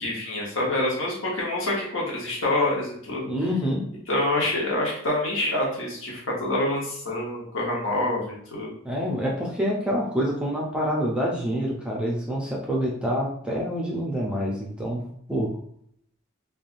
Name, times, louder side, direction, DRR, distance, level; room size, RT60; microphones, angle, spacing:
voice 1, 0.0-3.3 4.1-8.7, left 1 dB, 70° left, -3 dB, 1.0 m, -26 dB
voice 2, 3.2-3.8 8.8-15.0 15.3-15.5, equal, 5° right, -3 dB, 0.5 m, -27 dB
3.3 x 2.3 x 2.5 m, 0.66 s
head